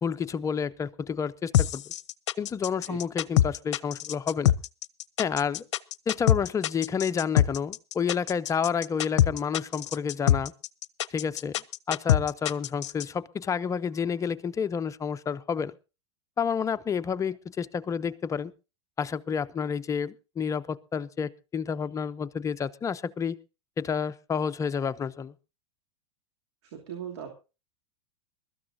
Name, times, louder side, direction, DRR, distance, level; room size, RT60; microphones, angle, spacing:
voice 1, 0.0-1.8 2.4-4.5 5.2-5.6 6.1-10.5 11.1-11.6 11.9-15.7 16.4-18.5 19.0-23.4 23.8-25.3, left 6 dB, 20° left, 12 dB, 0.7 m, -30 dB
sound 1, 1.5-13.0, left 12 dB, 75° left, 0.6 m, -24 dB
voice 2, 26.6-27.4, right 8 dB, 65° right, 2 dB, 2.9 m, -39 dB
22.0 x 13.5 x 2.7 m, 0.30 s
hypercardioid pair, 105°, 15 cm